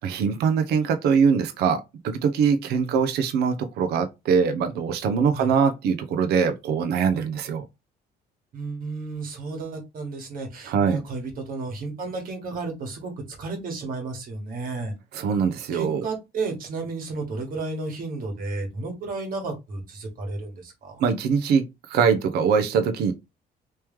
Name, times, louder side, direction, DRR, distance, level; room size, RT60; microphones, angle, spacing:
voice 1, 0.0-7.6 10.7-11.0 15.1-16.0 21.0-23.1, right 6 dB, 75° right, 0.7 m, -22 dB
voice 2, 8.5-14.9 15.7-21.0, right 3 dB, 55° right, 1.6 m, -33 dB
3.1 x 3.0 x 3.4 m
cardioid pair, 110°, 17 cm